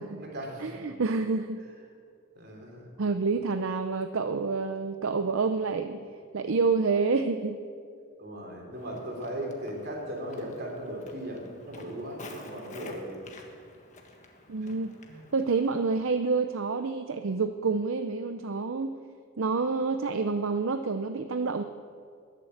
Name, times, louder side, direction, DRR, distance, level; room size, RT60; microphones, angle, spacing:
voice 1, 0.0-0.8 2.4-2.9 8.2-13.2 14.6-14.7 15.1-15.3, equal, 50° right, 0 dB, 3.5 m, -38 dB
voice 2, 0.6-1.7 3.0-7.6 14.5-14.9 15.3-18.9 19.4-21.6, right 4 dB, 70° right, 8 dB, 0.6 m, -28 dB
Walk footsteps, 8.7-16.1, left 2 dB, 35° left, 1.5 m, -50 dB
21.0 x 7.6 x 7.9 m, 2.3 s
head